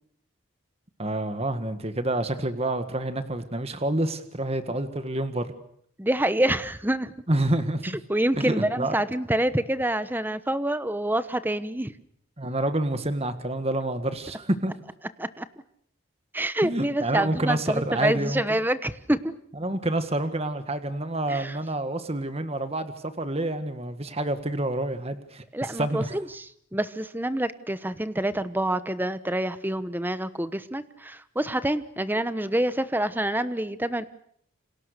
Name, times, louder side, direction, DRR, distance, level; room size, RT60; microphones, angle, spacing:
voice 1, 1.0-5.5 7.3-8.0 8.4-9.0 12.4-14.7 16.6-18.4 19.5-26.2, right 1 dB, 30° right, 9 dB, 1.7 m, -28 dB
voice 2, 6.0-7.1 7.8-11.9 15.2-15.5 16.3-19.3 21.3-21.6 25.5-34.0, right 1 dB, 10° right, 13 dB, 1.0 m, -27 dB
29.0 x 26.5 x 6.7 m, 0.67 s
head